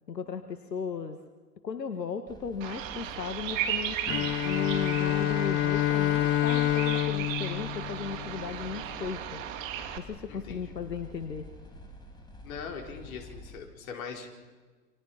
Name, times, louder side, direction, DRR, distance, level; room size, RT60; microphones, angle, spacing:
voice 1, 0.1-1.2 1.6-9.4 10.0-11.5, left 6 dB, 85° left, 9 dB, 1.8 m, -36 dB
sound 1, 2.3-13.6, left 1 dB, 10° left, 3.6 m, -48 dB
Bird vocalization bird call bird song, 2.6-10.0, right 10 dB, 50° right, 3.2 m, -36 dB
Bowed string instrument, 4.1-8.8, left 14 dB, 25° left, 0.9 m, -28 dB
voice 2, 10.3-10.7 12.4-14.3, left 6 dB, 55° left, 3 dB, 4.8 m, -41 dB
29.5 x 26.5 x 5.8 m, 1.4 s
hypercardioid pair, 115°, 48 cm